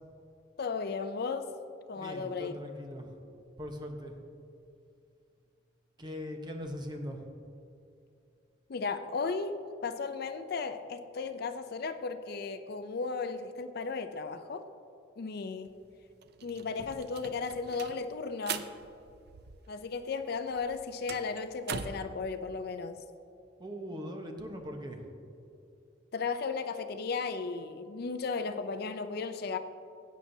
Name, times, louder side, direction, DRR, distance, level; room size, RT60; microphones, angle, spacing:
voice 1, 0.6-1.5 1.9-2.6 8.7-14.6 15.2-15.7 16.4-18.7 19.7-23.0 26.1-29.6, left 4 dB, 55° left, 9 dB, 0.4 m, -35 dB
voice 2, 1.9-3.2 3.6-4.2 6.0-7.2 23.6-25.1, equal, 25° right, 3 dB, 1.0 m, -40 dB
sound 1, 15.7-15.8 16.0-19.9 20.2-22.1, right 6 dB, 55° right, 0.5 m, -42 dB
16.0 x 8.3 x 2.7 m, 2.6 s
head